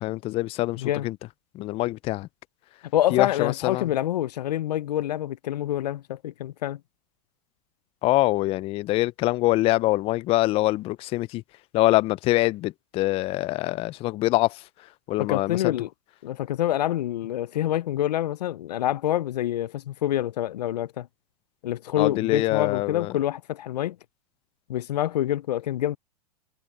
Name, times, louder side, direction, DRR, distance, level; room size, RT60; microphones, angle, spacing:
voice 1, 0.0-1.1 1.6-2.3 3.1-3.9 8.0-11.4 11.7-14.6 15.1-15.7 22.0-23.1, left 18 dB, 30° left, 0.4 m, -24 dB
voice 2, 0.8-1.1 2.9-6.8 15.2-15.9 16.2-21.1 21.6-24.0 24.7-26.0, left 12 dB, 85° left, 0.5 m, -26 dB
hypercardioid pair, 120°, 20 cm